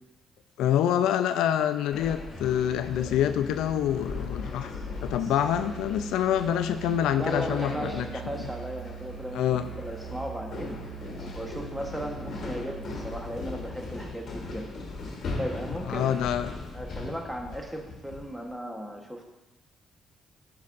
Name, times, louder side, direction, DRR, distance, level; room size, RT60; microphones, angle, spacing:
voice 1, 0.6-4.7 5.0-8.1 9.3-9.6 15.9-16.5, left 10 dB, 90° left, 10 dB, 0.3 m, -26 dB
sound 1, 1.9-18.4, left 3 dB, 60° left, 1.7 m, -39 dB
Musical instrument, 2.3-14.1, right 4 dB, 15° left, 2.4 m, -42 dB
voice 2, 7.2-10.8 11.0-14.7 15.4-16.1 16.7-19.2, equal, 5° right, 1 dB, 1.1 m, -36 dB
9.4 x 5.4 x 2.5 m, 1.0 s
cardioid pair, 90°, 0 cm